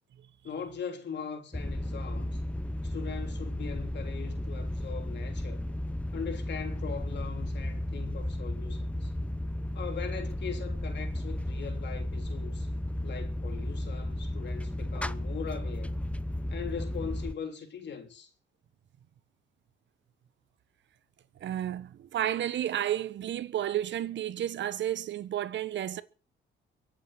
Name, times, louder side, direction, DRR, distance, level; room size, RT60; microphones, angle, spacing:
voice 1, 0.4-2.4 2.8-5.6 6.1-9.1 9.7-12.7 13.0-16.1 16.5-18.3, left 7 dB, 60° left, 3.3 m, -40 dB
sound 1, 1.5-17.3, left 1 dB, 5° left, 0.8 m, -34 dB
voice 2, 21.4-26.0, right 11 dB, 65° right, 1.2 m, -32 dB
23.0 x 8.7 x 6.2 m
cardioid pair, 90°, 20 cm